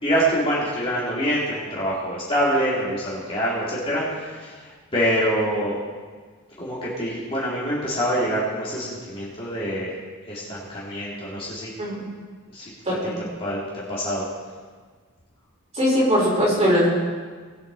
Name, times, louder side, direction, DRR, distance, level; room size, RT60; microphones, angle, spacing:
voice 1, 0.0-5.8 6.6-9.9 10.3-11.7 12.5-14.2, equal, 25° left, -8 dB, 2.8 m, -25 dB
voice 2, 15.8-16.9, equal, 30° right, -5 dB, 4.5 m, -19 dB
20.0 x 8.3 x 4.1 m, 1.5 s
head